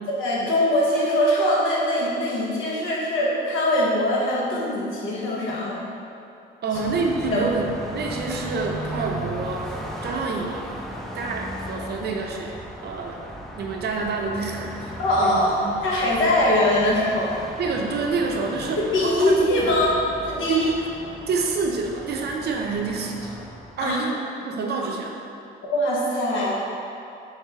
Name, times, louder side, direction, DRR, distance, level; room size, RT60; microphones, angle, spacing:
voice 1, 0.2-5.8 7.3-7.4 15.0-15.6 15.8-17.3 18.8-19.9 20.2-20.7 23.8-24.0 25.7-26.6, left 1 dB, 80° left, -5 dB, 0.9 m, -22 dB
voice 2, 6.6-10.7 11.1-13.2 13.6-15.8 17.6-19.8 20.4-20.9 21.3-23.3 23.8-25.2, right 4 dB, 55° right, 1 dB, 0.5 m, -28 dB
Car passing by, 6.7-23.9, equal, ahead, 0.4 m, -37 dB
3.5 x 3.2 x 3.2 m, 2.6 s
cardioid pair, 90°, 20 cm